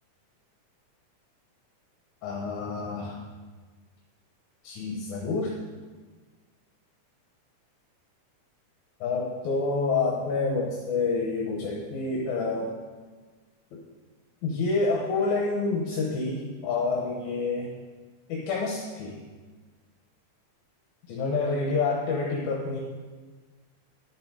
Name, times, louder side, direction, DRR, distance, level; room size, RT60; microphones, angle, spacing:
voice 1, 2.2-3.2 4.6-5.5 9.0-12.7 13.7-13.8 14.4-17.7 18.3-19.2 21.1-22.8, left 3 dB, 75° left, -1 dB, 2.4 m, -28 dB
11.0 x 7.4 x 4.9 m, 1.4 s
omnidirectional pair, 3.5 m